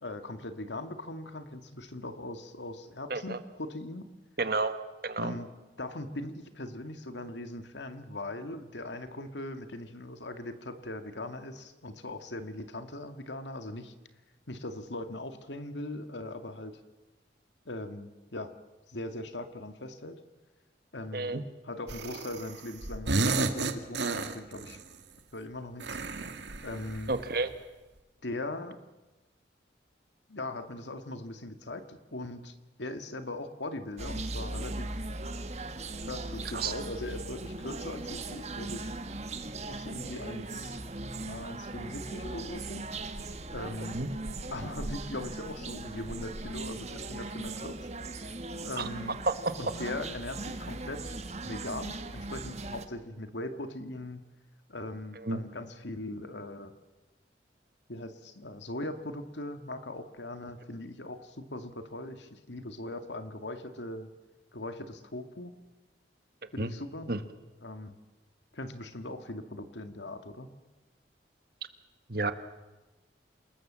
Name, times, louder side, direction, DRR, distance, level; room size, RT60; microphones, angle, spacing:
voice 1, 0.0-4.1 5.2-5.5 5.8-13.9 14.5-16.8 17.7-18.5 18.9-20.2 20.9-21.3 21.6-24.8 25.3-25.9 26.6-27.1 28.2-28.8 30.3-34.9 36.0-38.9 39.7-40.8 41.2-42.8 43.5-44.0 44.5-47.9 48.1-48.4 48.6-49.2 49.6-51.2 51.4-54.2 54.7-56.7 57.9-64.1 64.5-65.5 66.5-67.1 67.6-68.0 68.5-70.5, left 1 dB, 80° left, 8 dB, 2.1 m, -40 dB
voice 2, 4.4-4.7 5.0-5.3 21.1-21.4 27.1-27.5 36.5-36.7 43.9-44.1 48.8-48.9 49.3-49.4 55.2-55.4 66.6-66.7 67.1-67.2 72.1-72.3, right 3 dB, 55° right, 10 dB, 1.6 m, -30 dB
sound 1, 21.9-22.6 22.8-24.8 25.8-27.3, right 3 dB, 80° right, 1.9 m, -32 dB
Yangoon temple atmosphere, 34.0-52.9, right 2 dB, 35° right, 1.5 m, -39 dB
28.0 x 19.5 x 7.6 m, 1.1 s
head